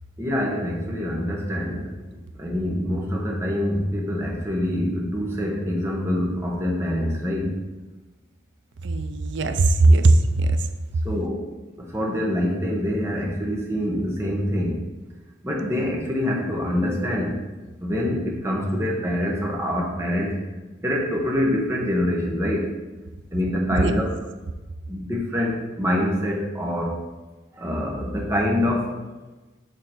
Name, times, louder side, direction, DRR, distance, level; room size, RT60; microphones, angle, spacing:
voice 1, 0.2-1.9 2.4-7.6 11.0-11.5 11.8-14.8 15.4-17.4 17.8-20.3 20.8-22.7 23.3-24.1 24.9-27.0 27.5-28.9, left 1 dB, 15° right, -2 dB, 1.1 m, -25 dB
voice 2, 8.8-10.7 23.7-24.0, right 2 dB, 65° right, 8 dB, 0.5 m, -18 dB
6.5 x 3.8 x 4.5 m, 1.2 s
head